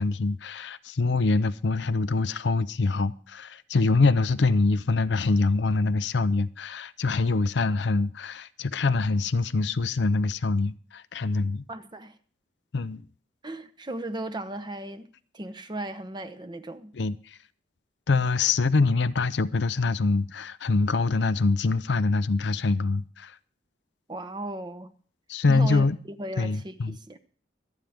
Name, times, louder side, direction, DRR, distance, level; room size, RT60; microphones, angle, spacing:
voice 1, 0.0-11.6 12.7-13.0 16.9-17.4 18.1-23.4 25.3-26.0 26.4-27.0, left 3 dB, 65° left, 0.6 m, -24 dB
voice 2, 11.7-12.2 13.4-16.9 24.1-24.9 25.5-27.2, right 1 dB, 25° right, 0.9 m, -36 dB
24.5 x 9.1 x 3.5 m
head